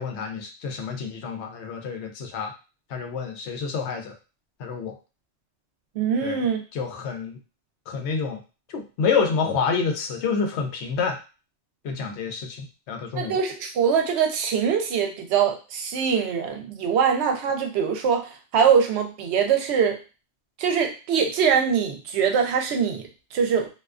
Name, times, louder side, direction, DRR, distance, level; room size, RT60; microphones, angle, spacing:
voice 1, 0.0-2.5 2.9-4.1 4.6-4.9 6.2-6.4 6.7-7.4 7.9-8.4 8.7-11.2 11.8-13.4, left 5 dB, 75° left, 4 dB, 0.8 m, -28 dB
voice 2, 6.0-6.6 13.1-20.0 20.6-23.0 23.3-23.7, right 7 dB, 75° right, 4 dB, 0.8 m, -23 dB
2.4 x 2.2 x 2.3 m, 0.32 s
omnidirectional pair, 1.2 m